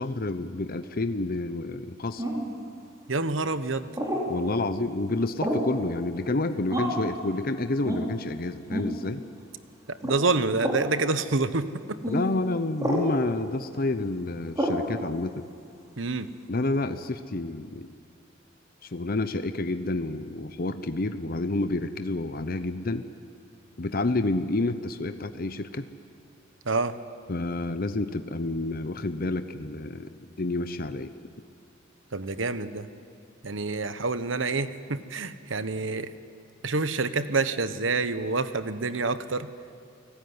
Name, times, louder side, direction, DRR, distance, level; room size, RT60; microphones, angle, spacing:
voice 1, 0.0-2.2 4.3-9.2 12.1-15.5 16.5-17.9 18.8-23.1 23.8-25.9 27.3-31.1, left 2 dB, 50° left, 10 dB, 0.9 m, -29 dB
sound 1, 2.2-2.5 3.9-4.3 5.4-5.7 6.7-7.1 7.8-8.1 8.7-8.9 10.0-10.2 10.6-10.8 12.0-12.2 12.8-13.1 14.5-14.8, equal, 20° right, 4.0 m, -28 dB
voice 2, 3.1-3.9 9.9-12.0 16.0-16.3 26.7-27.0 32.1-32.9 33.4-36.1 36.6-39.5, right 3 dB, 85° right, 12 dB, 1.2 m, -27 dB
29.5 x 19.0 x 9.7 m, 2.4 s
head